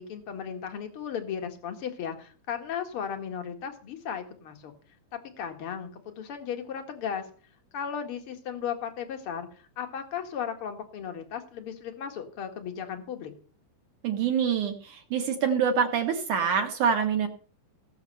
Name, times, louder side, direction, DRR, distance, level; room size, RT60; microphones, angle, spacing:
voice 1, 0.0-4.7 5.1-7.2 7.7-13.3, left 8 dB, 60° left, 5 dB, 1.4 m, -36 dB
voice 2, 14.0-17.3, right 7 dB, 65° right, 4 dB, 2.0 m, -26 dB
18.0 x 7.3 x 5.5 m, 0.41 s
omnidirectional pair, 5.4 m